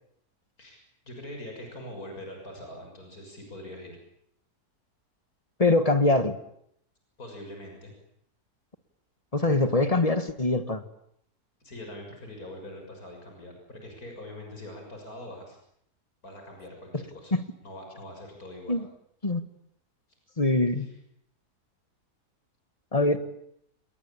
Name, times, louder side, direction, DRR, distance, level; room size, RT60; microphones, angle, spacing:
voice 1, 0.6-4.0 7.2-7.9 11.6-15.6 16.2-17.3 17.6-18.8, left 1 dB, 65° left, 2 dB, 7.0 m, -43 dB
voice 2, 5.6-6.4 9.3-10.8 17.3-17.4 18.7-18.9 19.2-19.4 20.4-20.9 22.9-23.2, left 2 dB, 25° left, 11 dB, 1.7 m, -23 dB
28.5 x 21.5 x 8.7 m, 0.71 s
omnidirectional pair, 1.7 m